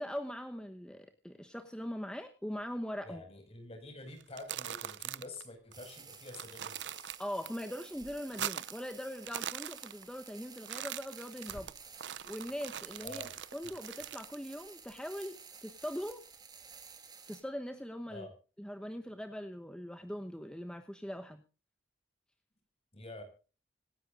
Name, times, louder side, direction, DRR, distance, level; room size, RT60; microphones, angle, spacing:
voice 1, 0.0-3.2 7.2-11.7 12.3-13.2 13.5-16.2 17.3-18.3 18.6-21.4, equal, 5° left, 6 dB, 1.0 m, -41 dB
voice 2, 3.1-7.1 13.0-13.3 18.1-18.3 22.9-23.2, left 2 dB, 35° left, 5 dB, 5.6 m, -48 dB
sound 1, 4.2-5.4 5.7-5.8 6.1-7.5 7.8-8.9 9.2-10.3 10.6-14.3, right 11 dB, 85° right, 0.6 m, -41 dB
sound 2, 5.7-17.4, right 6 dB, 25° right, 2.5 m, -53 dB
Crackle, 11.5-17.6, right 1 dB, 65° right, 3.7 m, -62 dB
26.0 x 10.5 x 2.5 m, 0.36 s
head